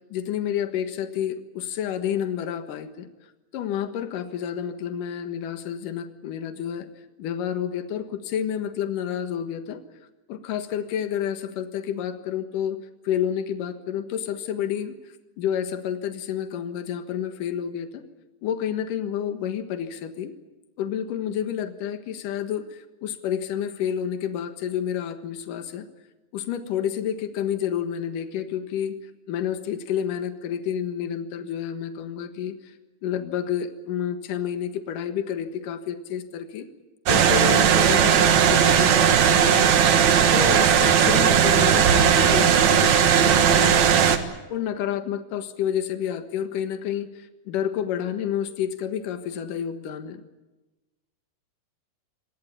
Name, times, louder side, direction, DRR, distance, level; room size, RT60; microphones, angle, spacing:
voice 1, 0.1-3.1 3.5-6.9 7.2-9.8 10.3-12.8 13.0-18.0 18.4-20.3 20.8-25.9 26.3-29.0 29.3-32.7 33.0-36.7 37.1-39.8 40.3-44.1 44.5-50.2, left 9 dB, 60° left, 8 dB, 2.4 m, -29 dB
sound 1, 37.1-44.2, right 8 dB, 75° right, 1.6 m, -17 dB
26.0 x 19.5 x 8.5 m, 1.1 s
omnidirectional pair, 5.6 m